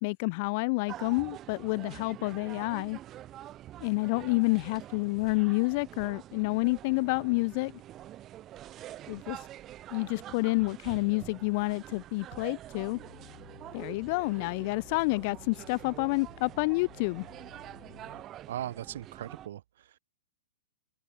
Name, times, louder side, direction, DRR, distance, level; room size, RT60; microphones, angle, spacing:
voice 1, 0.0-3.0 3.8-7.7 9.1-9.4 9.9-13.0 13.7-17.3, left 28 dB, 40° left, 0.3 m, -29 dB
sound 1, 0.9-19.5, right 13 dB, 25° right, 1.9 m, -46 dB
sound 2, 12.9-18.2, left 10 dB, 70° left, 0.9 m, -53 dB
voice 2, 18.5-20.0, right 12 dB, 65° right, 0.9 m, -39 dB
hypercardioid pair, 150°, 0 cm